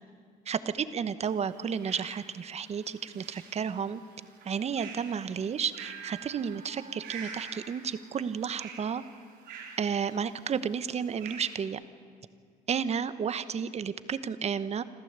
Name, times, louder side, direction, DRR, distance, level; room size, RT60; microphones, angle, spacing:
voice 1, 0.5-4.0 4.4-9.0 9.8-11.8 12.7-14.8, right 7 dB, 40° right, 14 dB, 1.1 m, -32 dB
sound 1, 1.2-11.7, right 6 dB, 80° right, 4.3 m, -47 dB
27.0 x 14.0 x 8.1 m, 2.2 s
cardioid pair, 110°, 17 cm